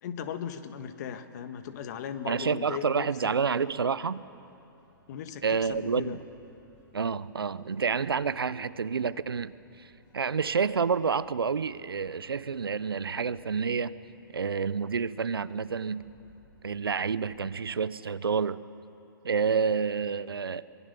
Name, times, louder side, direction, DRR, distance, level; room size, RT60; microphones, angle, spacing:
voice 1, 0.0-3.1 5.1-6.2, left 8 dB, 50° left, 9 dB, 1.6 m, -37 dB
sound 1, 1.6-17.5, left 3 dB, 30° left, 6.2 m, -61 dB
voice 2, 2.3-4.2 5.4-6.2 6.9-9.5 9.8-9.9 10.1-13.9 14.3-16.1 16.6-18.6 19.2-20.6, right 6 dB, 85° right, 17 dB, 0.7 m, -29 dB
24.5 x 22.0 x 6.9 m, 2.8 s
hypercardioid pair, 125°, 12 cm